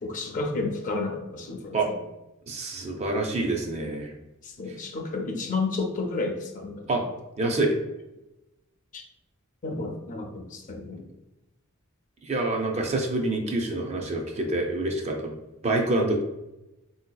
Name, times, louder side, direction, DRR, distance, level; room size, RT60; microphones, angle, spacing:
voice 1, 0.0-2.0 4.6-6.9 8.9-9.0 9.6-11.0, left 3 dB, 40° left, 2 dB, 0.5 m, -31 dB
voice 2, 2.5-4.1 4.7-4.8 6.9-7.0 7.4-7.7 12.2-15.3 15.6-16.2, right 2 dB, 30° right, 2 dB, 0.4 m, -26 dB
3.8 x 2.6 x 2.2 m, 0.96 s
head